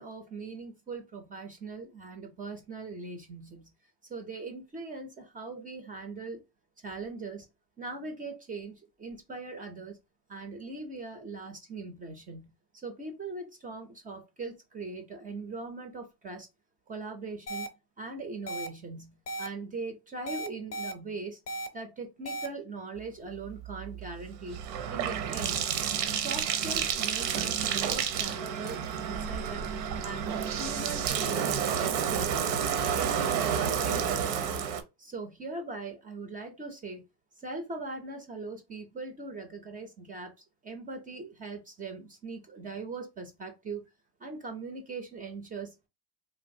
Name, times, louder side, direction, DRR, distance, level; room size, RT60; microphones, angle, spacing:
voice 1, 0.0-3.7 4.1-6.4 6.8-7.5 7.8-10.0 10.3-16.5 16.9-17.7 18.0-21.4 21.7-24.6 24.9-25.7 26.2-29.7 30.0-32.4 33.0-34.6 35.0-37.0 37.4-43.8 44.2-45.9, right 3 dB, 20° right, 0.3 m, -40 dB
sound 1, 17.5-17.7 18.5-18.7 19.3-19.5 20.3-20.9 21.5-21.7 22.3-22.5, right 1 dB, 30° left, 0.5 m, -35 dB
Bathtub (filling or washing), 23.4-34.8, right 8 dB, 85° right, 0.7 m, -30 dB
3.1 x 2.5 x 2.5 m
supercardioid pair, 110°, 50 cm